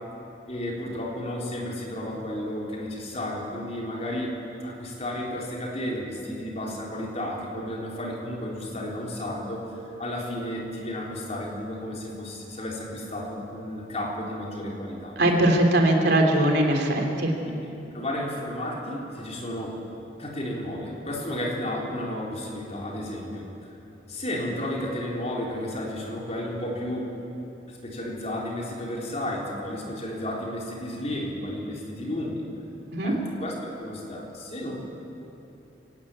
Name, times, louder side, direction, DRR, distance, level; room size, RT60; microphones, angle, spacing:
voice 1, 0.5-15.2 17.9-19.7 20.2-23.8 24.1-27.1 27.7-32.4 33.0-34.8, left 1 dB, 40° left, -2 dB, 4.2 m, -33 dB
voice 2, 15.2-17.3 32.9-33.1, right 1 dB, 65° right, 2 dB, 3.3 m, -21 dB
22.5 x 19.0 x 8.8 m, 3.0 s
head